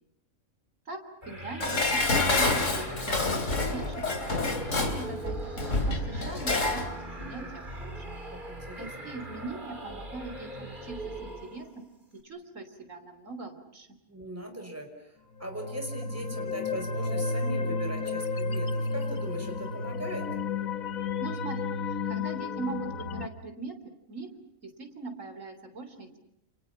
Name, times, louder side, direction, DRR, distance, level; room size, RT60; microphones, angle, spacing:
sound 1, 1.2-11.8, right 1 dB, 35° right, 3.9 m, -41 dB
voice 1, 1.3-3.3 3.7-5.5 5.9-6.9 7.2-8.0 8.8-11.9 12.2-13.9 21.2-24.3 24.6-26.2, right 4 dB, 65° right, 7 dB, 3.8 m, -41 dB
Dishes pots and pans, 1.6-6.9 7.2-7.3, left 2 dB, 65° left, 3.4 m, -28 dB
voice 2, 7.2-7.5 8.3-9.1 14.1-15.1 15.4-20.3, equal, 10° right, 4 dB, 5.1 m, -39 dB
sound 2, 15.4-23.3, left 4 dB, 80° left, 1.8 m, -32 dB
30.0 x 29.0 x 5.8 m, 0.77 s
omnidirectional pair, 1.4 m